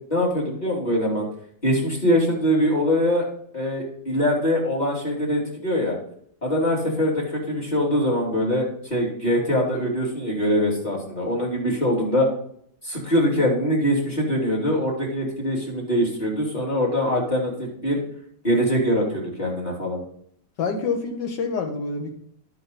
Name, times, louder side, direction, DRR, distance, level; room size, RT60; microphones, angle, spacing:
voice 1, 0.1-1.3 1.6-3.2 3.5-6.0 6.4-12.3 12.8-18.0 18.4-20.0, equal, 25° left, -3 dB, 3.2 m, -23 dB
voice 2, 20.6-22.2, left 4 dB, 80° left, 4 dB, 2.1 m, -27 dB
10.5 x 6.1 x 4.0 m, 0.67 s
omnidirectional pair, 1.9 m